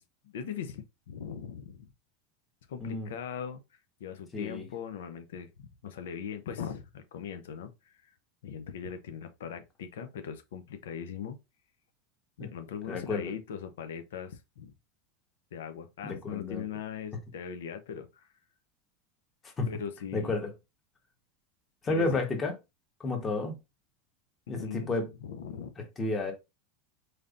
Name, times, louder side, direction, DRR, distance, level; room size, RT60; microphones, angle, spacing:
voice 1, 0.2-1.9 2.7-3.6 4.0-8.2 8.4-11.4 12.4-14.7 15.5-18.3 19.7-20.4 21.8-22.2 24.5-24.9 25.2-25.7, left 7 dB, 90° left, 0.6 m, -40 dB
voice 2, 4.3-4.7 12.4-12.5 12.9-13.3 16.0-16.6 19.4-19.7 20.1-20.5 21.8-22.5 23.0-23.5 24.5-25.1 25.8-26.3, left 3 dB, 20° left, 1.1 m, -31 dB
4.0 x 3.3 x 2.5 m
supercardioid pair, 130°, 0 cm